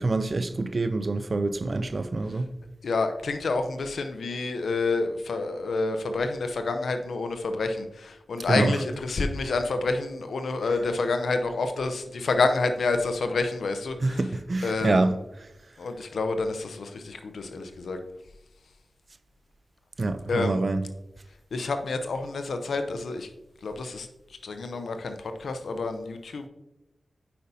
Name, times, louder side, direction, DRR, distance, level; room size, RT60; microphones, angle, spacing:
voice 1, 0.0-2.5 8.5-8.7 14.0-15.2 20.0-20.9, right 2 dB, 55° right, 0.5 m, -26 dB
voice 2, 2.8-14.2 14.6-15.1 15.8-18.0 20.3-20.6 21.5-23.3 23.6-24.1 24.4-26.5, left 3 dB, 90° left, 0.6 m, -28 dB
8.4 x 5.5 x 2.7 m
cardioid pair, 50°, 0 cm